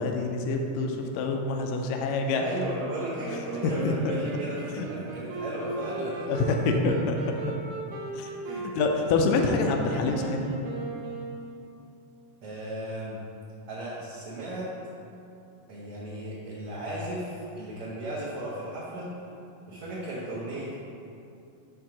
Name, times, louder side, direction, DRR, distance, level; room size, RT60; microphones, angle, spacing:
voice 1, 0.0-2.5 3.6-4.1 4.8-4.9 6.3-7.2 8.1-8.3 8.8-10.5, left 3 dB, 80° left, 2 dB, 1.8 m, -26 dB
voice 2, 2.4-6.3 8.4-8.7 12.4-13.2 13.7-14.7 15.7-19.1 19.7-20.8, right 1 dB, 60° right, -8 dB, 1.8 m, -35 dB
Wind instrument woodwind instrument, 3.2-11.9, right 3 dB, 85° right, 2.2 m, -37 dB
7.5 x 3.6 x 6.0 m, 2.7 s
omnidirectional pair, 3.5 m